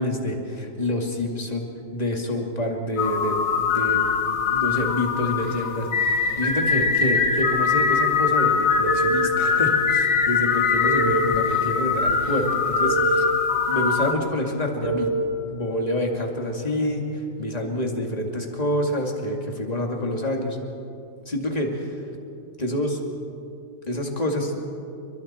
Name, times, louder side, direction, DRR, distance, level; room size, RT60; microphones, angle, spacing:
voice 1, 0.0-4.1 4.5-13.3 13.7-15.1 15.4-20.6 21.3-21.9 22.6-23.0 23.9-24.5, left 1 dB, 30° left, 1 dB, 2.5 m, -27 dB
sound 1, 3.0-14.1, left 5 dB, 75° left, 1.7 m, -22 dB
sound 2, 8.8-10.0 10.8-12.0 12.8-14.0 14.8-16.0, right 1 dB, 20° right, 3.4 m, -28 dB
30.0 x 23.5 x 4.4 m, 2.6 s
omnidirectional pair, 1.4 m